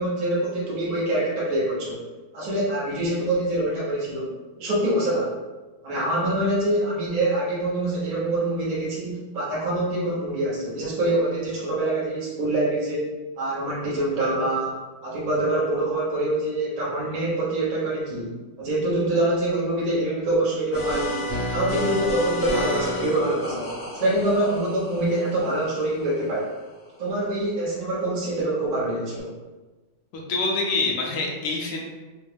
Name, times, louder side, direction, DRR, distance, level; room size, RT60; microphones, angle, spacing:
voice 1, 0.0-2.0 2.3-5.3 5.8-14.7 15.0-18.3 18.6-26.5 27.0-29.3, right 1 dB, 35° right, -7 dB, 0.6 m, -25 dB
sound 1, 20.7-26.5, equal, 35° left, 0.9 m, -30 dB
voice 2, 30.3-31.8, left 3 dB, 70° left, -1 dB, 1.0 m, -25 dB
3.5 x 2.4 x 3.3 m, 1.2 s
omnidirectional pair, 2.2 m